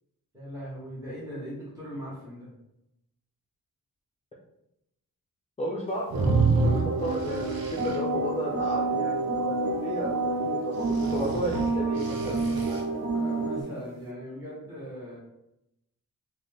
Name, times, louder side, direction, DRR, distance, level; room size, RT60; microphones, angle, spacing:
voice 1, 0.3-2.5 12.8-15.2, equal, 10° right, -8 dB, 1.0 m, -40 dB
voice 2, 5.6-7.5 7.8-12.8, equal, 20° left, -4 dB, 0.4 m, -34 dB
sound 1, 6.1-13.6, right 3 dB, 50° right, 0.5 m, -29 dB
sound 2, 6.1-8.0 10.8-12.8, right 4 dB, 90° right, 0.7 m, -28 dB
4.1 x 2.1 x 3.3 m, 0.84 s
wide cardioid pair, 175°, 35 cm